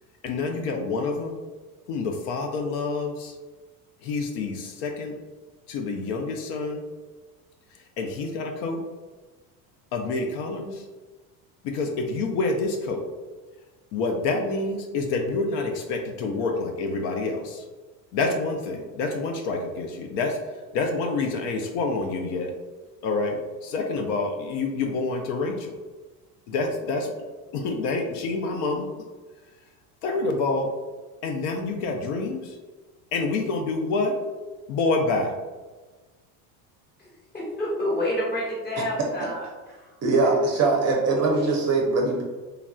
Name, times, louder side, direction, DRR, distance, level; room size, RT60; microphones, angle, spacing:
voice 1, 0.2-1.4 1.9-3.4 4.0-5.2 5.7-6.8 7.7-8.8 9.9-10.9 11.6-13.0 13.9-17.7 18.1-22.5 23.0-25.8 26.5-27.1 27.5-28.9 30.0-30.7 31.2-32.6 33.1-34.2 34.7-35.4, left 3 dB, 65° left, 3 dB, 0.6 m, -27 dB
voice 2, 37.0-39.5 39.7-40.3, left 1 dB, 20° left, -4 dB, 1.1 m, -29 dB
voice 3, 40.0-42.2, right 3 dB, 35° right, 0 dB, 0.5 m, -21 dB
3.3 x 2.3 x 2.3 m, 1.3 s
supercardioid pair, 95°, 46 cm